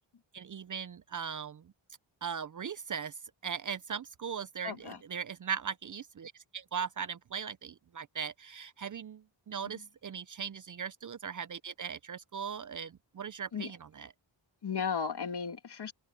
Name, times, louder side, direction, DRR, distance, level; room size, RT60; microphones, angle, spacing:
voice 1, 0.3-1.6 2.2-3.1 3.4-14.1, right 7 dB, 40° right, 0.5 m, -39 dB
voice 2, 4.6-5.0 9.6-9.8 13.5-13.7 14.6-15.9, left 6 dB, 55° left, 2.2 m, -35 dB
wide cardioid pair, 110°, 47 cm